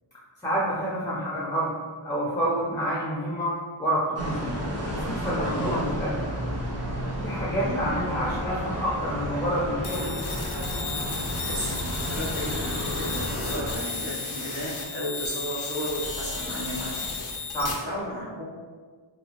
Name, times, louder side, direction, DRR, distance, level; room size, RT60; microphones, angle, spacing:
voice 1, 0.4-1.7 2.0-4.6 4.9-6.2 7.2-10.2 17.5-17.7, equal, 5° left, -6 dB, 0.5 m, -28 dB
sound 1, 4.2-13.7, equal, 30° right, 0.7 m, -32 dB
voice 2, 5.4-5.9 7.6-7.8 11.4-11.7 12.0-17.0 17.3-17.5 17.8-18.5, equal, 55° right, -7 dB, 1.1 m, -34 dB
sound 2, 9.8-17.7, left 4 dB, 75° left, 0.6 m, -33 dB
2.9 x 2.3 x 2.7 m, 1.5 s
wide cardioid pair, 65°, 50 cm